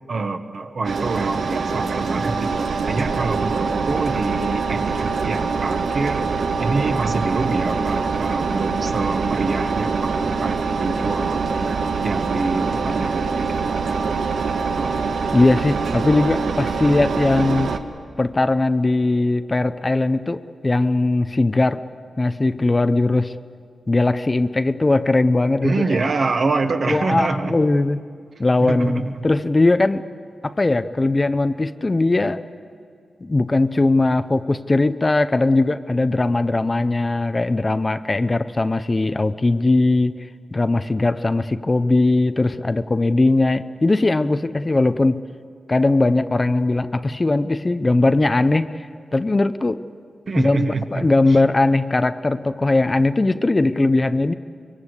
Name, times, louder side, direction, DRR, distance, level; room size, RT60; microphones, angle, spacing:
voice 1, 0.1-11.7 12.0-13.5 13.9-14.9 25.6-27.6 28.6-29.1 50.3-51.4, right 3 dB, 50° right, 7 dB, 1.4 m, -26 dB
Engine, 0.8-17.8, right 4 dB, 90° right, 1.4 m, -24 dB
voice 2, 15.3-17.8 18.2-21.8 22.2-23.4 23.9-26.1 26.9-28.0 28.4-30.0 30.4-32.4 33.2-45.2 45.7-49.8 50.4-54.3, left 2 dB, 25° left, 12 dB, 0.5 m, -19 dB
24.0 x 23.0 x 8.1 m, 2.4 s
wide cardioid pair, 140°, 0 cm